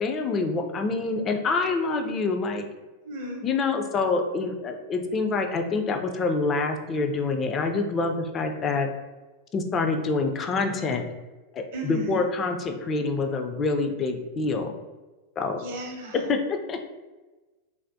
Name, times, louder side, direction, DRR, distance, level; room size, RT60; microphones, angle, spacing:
voice 1, 0.0-2.7 3.4-8.9 9.5-11.1 11.5-14.7 15.4-15.6 16.3-16.9, left 3 dB, 25° left, 5 dB, 0.3 m, -26 dB
voice 2, 3.0-3.4 11.7-12.2 15.6-16.3, right 1 dB, 55° right, 0 dB, 0.7 m, -35 dB
3.3 x 2.1 x 2.6 m, 1.2 s
figure-of-eight pair, 90°, 0 cm